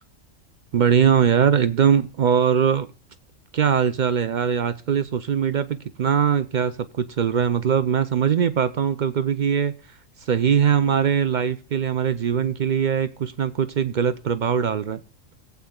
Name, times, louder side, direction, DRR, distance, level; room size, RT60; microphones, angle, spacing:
voice 1, 0.7-2.9 3.5-9.7 10.2-15.0, right 7 dB, 60° right, 12 dB, 0.5 m, -21 dB
18.0 x 8.3 x 2.2 m, 0.34 s
omnidirectional pair, 1.4 m